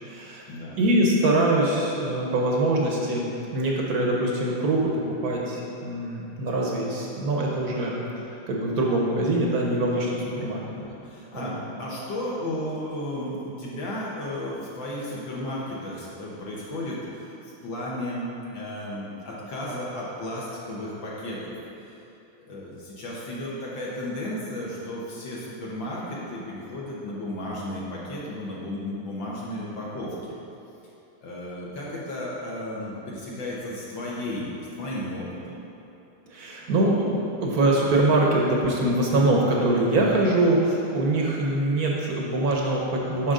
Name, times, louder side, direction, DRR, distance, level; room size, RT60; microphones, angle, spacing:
voice 1, 0.0-0.4 0.8-3.2 3.5-7.9 8.5-10.6 11.3-11.5 36.3-43.3, right 1 dB, 55° right, -2 dB, 1.1 m, -23 dB
voice 2, 10.6-11.5 11.8-17.3 17.6-21.5 21.8-21.9 22.5-30.2 31.2-34.5 34.8-35.6, left 1 dB, 65° left, -6 dB, 1.8 m, -34 dB
9.1 x 6.3 x 3.8 m, 2.8 s
omnidirectional pair, 2.4 m